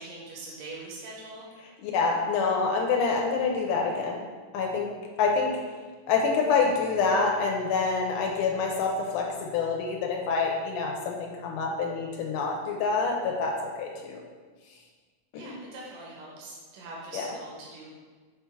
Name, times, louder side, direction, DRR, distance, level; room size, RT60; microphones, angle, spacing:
voice 1, 0.0-1.5 15.3-17.9, right 2 dB, 80° right, -4 dB, 2.4 m, -42 dB
voice 2, 1.8-4.2 4.5-4.9 5.2-5.5 6.1-14.2 15.3-15.6 17.1-17.3, left 4 dB, 80° left, 0 dB, 2.2 m, -27 dB
6.7 x 3.4 x 4.6 m, 1.5 s
omnidirectional pair, 3.7 m